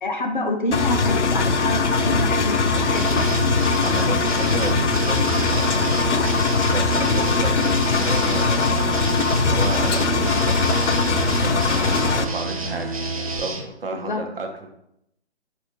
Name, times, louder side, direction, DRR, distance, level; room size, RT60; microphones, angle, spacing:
voice 1, 0.0-3.5 13.9-14.2, left 2 dB, 45° left, 5 dB, 0.6 m, -27 dB
Engine, 0.7-12.2, left 4 dB, 85° left, 0.5 m, -21 dB
sound 1, 1.4-13.4, right 2 dB, 5° right, 1.1 m, -31 dB
sound 2, 2.9-13.6, right 3 dB, 30° right, 0.5 m, -32 dB
voice 2, 3.8-14.7, right 3 dB, 55° right, 3 dB, 0.9 m, -33 dB
6.6 x 2.5 x 3.1 m, 0.78 s
figure-of-eight pair, 140°, 34 cm